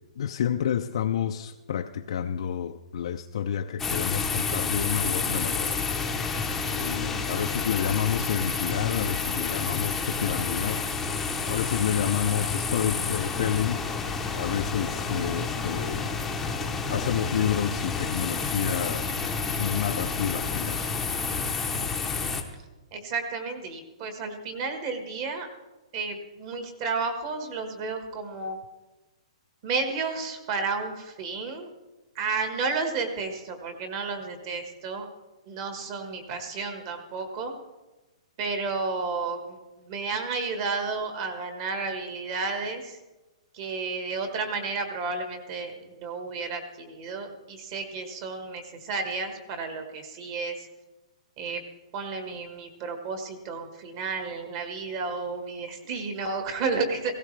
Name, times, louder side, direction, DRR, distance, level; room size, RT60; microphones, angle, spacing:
voice 1, 0.2-5.8 6.7-13.8 14.3-16.1 16.9-19.3 19.6-20.9, left 9 dB, 55° left, 5 dB, 0.5 m, -29 dB
sound 1, 3.8-22.4, left 4 dB, 5° left, 0.8 m, -29 dB
voice 2, 22.9-25.5 25.9-28.6 29.6-31.7 32.1-35.1 35.5-37.5 38.4-39.6 39.9-43.0 43.5-50.7 51.4-51.6 51.9-57.1, right 4 dB, 35° right, 6 dB, 1.4 m, -32 dB
17.5 x 16.0 x 3.3 m, 1.1 s
hypercardioid pair, 170°, 4 cm